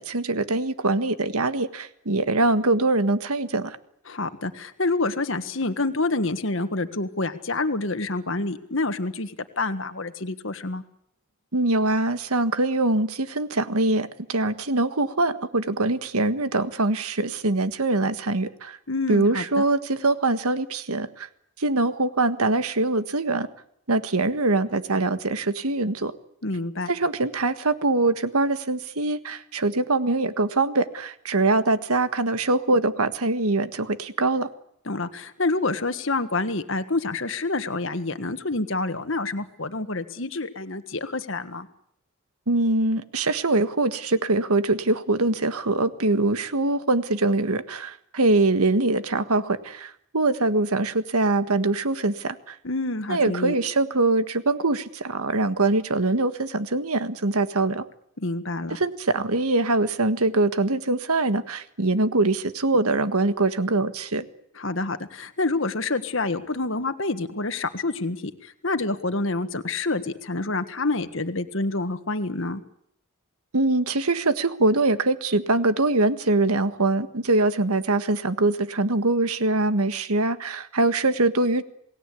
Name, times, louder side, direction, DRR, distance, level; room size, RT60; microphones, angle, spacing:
voice 1, 0.0-3.8 11.5-18.8 19.1-21.3 21.6-23.5 23.9-26.1 26.9-34.5 42.5-52.6 53.1-57.8 58.7-64.2 73.5-81.6, right 2 dB, 85° right, 11 dB, 1.6 m, -23 dB
voice 2, 4.1-10.8 18.9-19.6 26.4-26.9 34.9-41.7 52.6-53.6 58.2-58.8 64.6-72.6, left 2 dB, 60° left, 9 dB, 1.6 m, -27 dB
28.0 x 19.0 x 8.5 m, 0.73 s
head